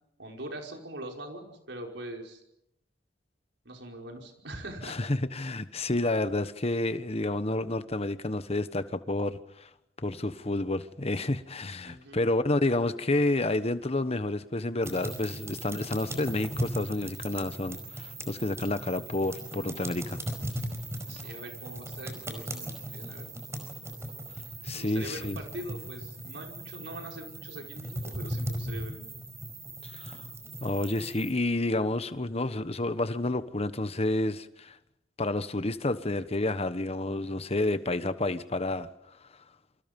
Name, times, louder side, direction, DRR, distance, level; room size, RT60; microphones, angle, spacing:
voice 1, 0.2-2.4 3.7-5.1 11.8-12.2 21.1-23.3 24.7-29.1, right 1 dB, 85° right, 2 dB, 5.3 m, -42 dB
voice 2, 4.8-9.7 10.0-20.2 24.6-25.4 29.8-30.2 30.6-34.8 35.2-38.9, left 2 dB, 35° left, 12 dB, 1.2 m, -30 dB
sound 1, 14.8-31.3, right 1 dB, 15° right, 4.9 m, -38 dB
28.0 x 25.5 x 5.4 m, 0.83 s
head